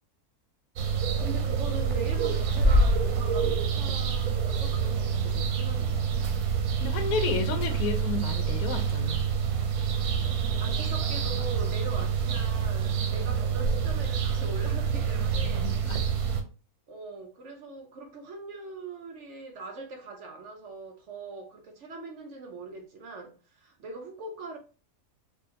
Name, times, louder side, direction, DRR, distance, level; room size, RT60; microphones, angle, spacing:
sound 1, 0.8-16.4, right 5 dB, 90° right, 1.2 m, -27 dB
voice 1, 1.2-6.1 10.6-15.7 16.9-24.6, right 3 dB, 60° right, 0.9 m, -41 dB
voice 2, 6.8-9.2 15.4-16.0, left 5 dB, 80° left, 1.2 m, -31 dB
4.8 x 2.4 x 2.7 m
omnidirectional pair, 1.6 m